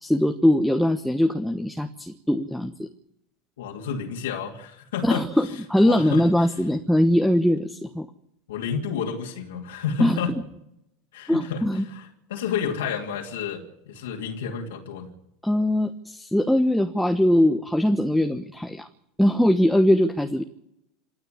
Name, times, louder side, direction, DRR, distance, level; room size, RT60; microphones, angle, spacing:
voice 1, 0.0-2.9 5.0-8.1 10.0-10.2 11.3-11.8 15.4-18.9 19.2-20.4, left 1 dB, ahead, 6 dB, 1.2 m, -21 dB
voice 2, 3.6-5.2 5.8-6.5 8.5-10.3 11.1-15.1, left 6 dB, 65° left, 0 dB, 2.7 m, -30 dB
27.5 x 9.5 x 10.0 m, 0.80 s
figure-of-eight pair, 80°, 0 cm